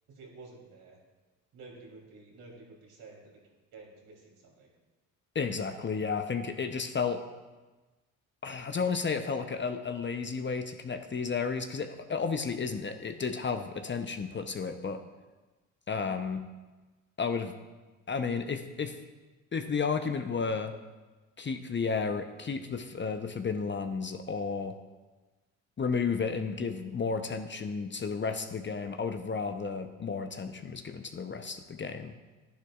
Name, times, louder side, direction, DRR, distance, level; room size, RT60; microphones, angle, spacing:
voice 1, 0.1-1.0 1.5-3.4 3.7-4.7, right 3 dB, 65° right, -2 dB, 3.2 m, -51 dB
voice 2, 5.3-7.2 8.4-15.0 15.9-16.4 17.2-17.5 18.1-19.0 19.5-20.7 21.4-24.8 25.8-32.1, left 5 dB, 30° left, 7 dB, 0.8 m, -32 dB
12.0 x 10.5 x 2.5 m, 1.2 s
hypercardioid pair, 50°, 40 cm